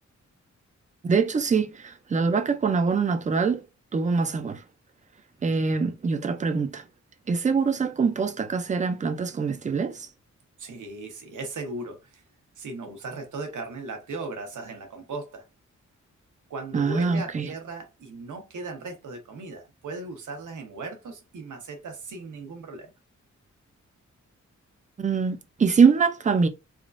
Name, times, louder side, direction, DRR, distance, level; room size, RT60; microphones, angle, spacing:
voice 1, 1.0-3.6 3.9-4.6 5.4-6.8 7.3-10.1 16.7-17.5 25.0-26.5, right 5 dB, 25° right, 0.3 m, -24 dB
voice 2, 10.6-12.2 12.6-15.4 16.5-22.9, right 3 dB, 80° right, 0.9 m, -37 dB
3.5 x 2.4 x 2.4 m
wide cardioid pair, 175°, 30 cm